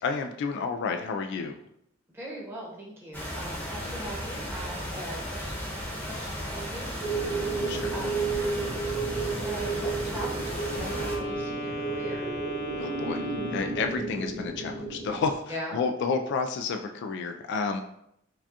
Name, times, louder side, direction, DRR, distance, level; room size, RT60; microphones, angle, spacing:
voice 1, 0.0-1.6 7.7-7.9 12.8-13.2 13.5-17.8, left 4 dB, 60° left, 5 dB, 0.3 m, -30 dB
voice 2, 2.1-6.9 7.9-8.4 8.7-12.3 15.5-15.8, equal, 10° right, -5 dB, 1.0 m, -40 dB
sound 1, 3.1-11.2, equal, 10° left, 0.9 m, -35 dB
sound 2, 7.0-15.3, right 4 dB, 65° right, 0.8 m, -32 dB
Wind instrument woodwind instrument, 10.4-13.9, equal, 85° left, 1.0 m, -37 dB
4.7 x 2.3 x 2.8 m, 0.75 s
head